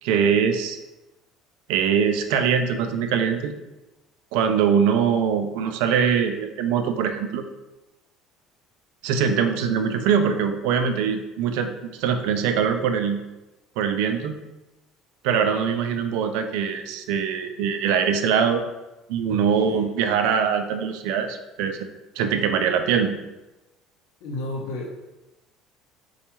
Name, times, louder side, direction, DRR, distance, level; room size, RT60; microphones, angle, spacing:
voice 1, 0.0-0.8 1.7-3.5 4.3-7.4 9.0-13.2 13.8-14.4 15.2-18.6 19.1-21.8 22.2-23.2, right 7 dB, 80° right, 7 dB, 0.3 m, -22 dB
voice 2, 19.3-19.9 24.2-24.9, left 2 dB, 75° left, 0 dB, 0.6 m, -33 dB
4.4 x 2.3 x 2.9 m, 1.0 s
cardioid pair, 165°, 0 cm